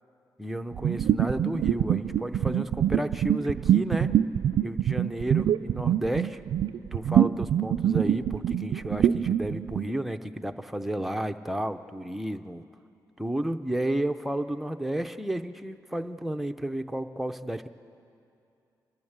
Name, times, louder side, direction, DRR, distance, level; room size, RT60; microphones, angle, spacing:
voice 1, 0.4-4.1 4.6-6.4 6.9-12.6 13.2-17.7, right 1 dB, 5° right, 7 dB, 0.6 m, -32 dB
sound 1, 0.7-9.9, right 10 dB, 70° right, 0.4 m, -25 dB
27.0 x 12.5 x 8.0 m, 2.6 s
cardioid pair, 140°, 8 cm